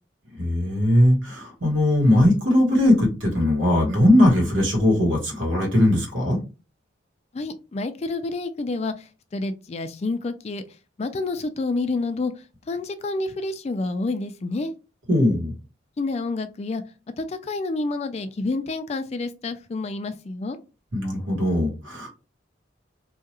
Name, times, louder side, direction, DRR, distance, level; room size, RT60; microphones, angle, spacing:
voice 1, 0.4-6.4 15.1-15.5 20.9-22.1, left 1 dB, 85° right, 0 dB, 1.3 m, -19 dB
voice 2, 7.3-10.6 11.0-14.7 16.0-16.8 17.2-20.6, left 3 dB, 35° left, 9 dB, 0.3 m, -29 dB
2.8 x 2.3 x 2.9 m, 0.31 s
head